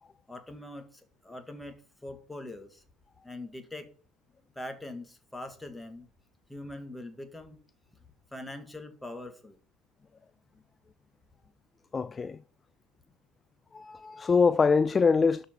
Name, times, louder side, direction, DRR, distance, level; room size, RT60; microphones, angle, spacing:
voice 1, 0.3-2.8 3.2-3.9 4.6-6.1 6.5-7.6 8.3-9.6, left 1 dB, 10° left, 2.2 m, -42 dB
voice 2, 11.9-12.4 13.7-15.4, left 5 dB, 25° left, 0.4 m, -24 dB
12.5 x 5.3 x 6.0 m
figure-of-eight pair, 65°, 0 cm